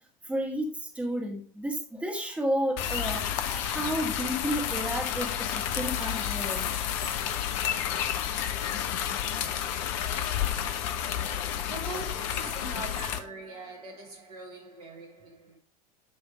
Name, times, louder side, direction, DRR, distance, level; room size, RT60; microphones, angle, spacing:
voice 1, 0.2-6.6, equal, 5° right, 1.7 m, -32 dB
sound 1, 2.8-13.2, left 10 dB, 50° left, 0.9 m, -30 dB
voice 2, 11.7-15.6, right 3 dB, 75° right, 2.9 m, -42 dB
10.0 x 3.5 x 5.1 m
figure-of-eight pair, 80°, 20 cm